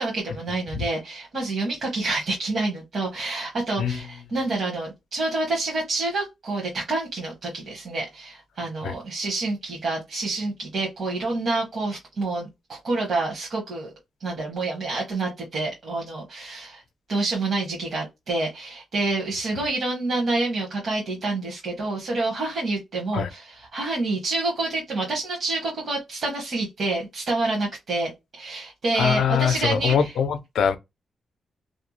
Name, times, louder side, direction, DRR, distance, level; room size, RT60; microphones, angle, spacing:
voice 1, 0.0-13.9 14.2-16.8 17.1-30.1, right 2 dB, 50° right, 0.9 m, -28 dB
voice 2, 29.0-30.8, left 7 dB, 85° left, 0.4 m, -23 dB
2.5 x 2.1 x 2.9 m
wide cardioid pair, 170°, 0 cm